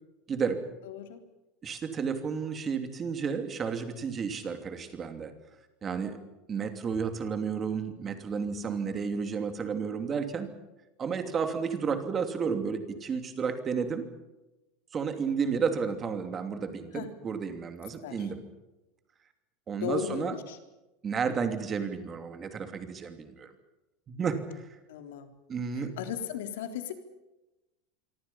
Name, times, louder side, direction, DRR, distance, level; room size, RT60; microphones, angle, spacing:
voice 1, 0.3-0.6 1.6-5.3 5.8-6.2 6.5-10.5 11.0-14.1 14.9-18.4 19.7-20.4 21.0-23.5 24.1-24.7 25.5-25.9, right 6 dB, 20° right, 7 dB, 2.8 m, -32 dB
voice 2, 0.9-1.2 16.9-17.1 18.0-18.3 19.8-20.6 24.9-25.3 26.0-26.9, left 9 dB, 80° left, 6 dB, 3.7 m, -36 dB
26.5 x 24.5 x 5.7 m, 1.0 s
supercardioid pair, 170°, 0 cm